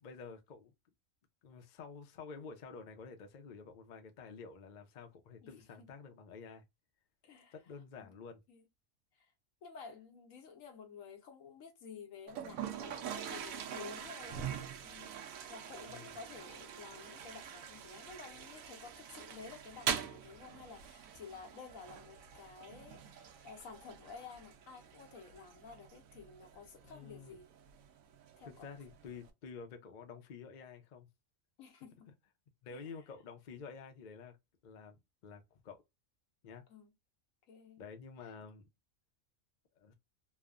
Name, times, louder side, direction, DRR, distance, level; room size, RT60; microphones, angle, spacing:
voice 1, 0.0-0.7 1.4-6.6 7.5-8.4 15.9-16.2 26.8-27.4 28.4-31.1 32.6-34.4 34.6-35.8 36.4-36.6 37.8-38.7 39.8-39.9, left 5 dB, 50° left, 0.6 m, -50 dB
voice 2, 5.4-5.9 7.2-7.5 8.0-8.1 8.5-8.6 9.1-9.3 9.6-14.5 14.8-27.5 28.4-28.7 31.6-32.1 32.7-32.9 36.7-36.9 37.5-37.8 38.2-38.3, left 5 dB, 80° left, 1.2 m, -52 dB
Toilet flush, 12.3-29.3, right 8 dB, 90° right, 1.0 m, -45 dB
3.1 x 2.1 x 2.3 m
omnidirectional pair, 1.4 m